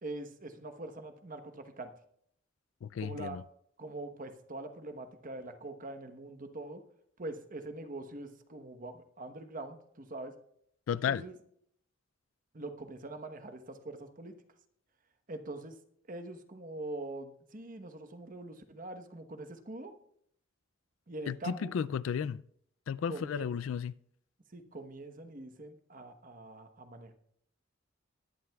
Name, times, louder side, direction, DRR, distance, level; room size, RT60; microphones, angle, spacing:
voice 1, 0.0-1.9 3.0-3.4 3.8-6.8 7.2-10.3 10.9-11.4 12.5-14.4 15.3-15.8 16.1-19.9 21.1-21.7 23.1-23.5 24.5-27.1, right 2 dB, 45° right, 1.1 m, -43 dB
voice 2, 2.8-3.4 10.9-11.2 21.3-22.4 22.9-23.9, left 7 dB, 75° left, 0.3 m, -33 dB
21.0 x 11.0 x 2.3 m
head